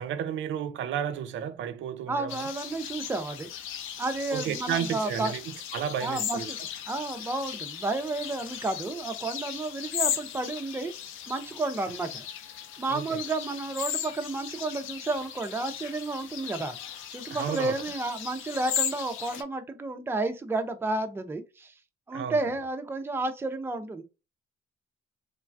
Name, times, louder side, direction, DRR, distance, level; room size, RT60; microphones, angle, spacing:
voice 1, 0.0-2.5 4.3-6.5 12.9-13.2 17.3-17.7 22.1-22.5, right 9 dB, 75° right, 0.4 m, -32 dB
voice 2, 2.1-3.5 4.0-5.3 6.0-6.6 6.9-10.9 11.3-12.2 12.8-16.8 17.1-21.7 22.1-24.0, right 2 dB, 10° right, 0.4 m, -31 dB
sound 1, 2.3-19.4, left 9 dB, 85° left, 0.4 m, -37 dB
3.1 x 2.2 x 2.5 m
cardioid pair, 90°, 20 cm